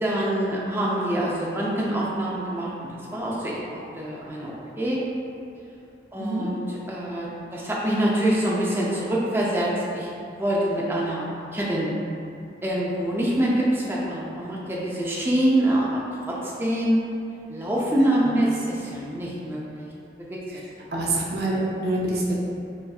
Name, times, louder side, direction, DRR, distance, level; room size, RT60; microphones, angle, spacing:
voice 1, 0.0-5.0 6.1-10.1 10.4-11.2 11.5-11.9 12.6-16.0 16.3-17.0 17.5-19.9 20.3-20.4, right 1 dB, 15° right, -5 dB, 0.5 m, -25 dB
voice 2, 20.9-22.3, right 2 dB, 65° right, -4 dB, 0.7 m, -26 dB
4.1 x 3.4 x 2.3 m, 2.6 s
head